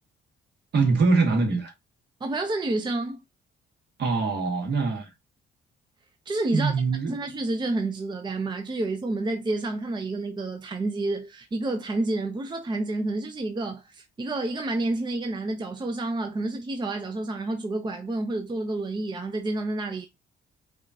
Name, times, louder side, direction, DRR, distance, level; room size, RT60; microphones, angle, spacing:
voice 1, 0.7-1.7 4.0-5.1 6.5-7.1, right 4 dB, 60° right, 1.4 m, -23 dB
voice 2, 2.2-3.2 6.3-6.7 7.1-20.1, right 2 dB, 20° right, 0.6 m, -29 dB
4.9 x 2.4 x 2.7 m
cardioid pair, 90°, 20 cm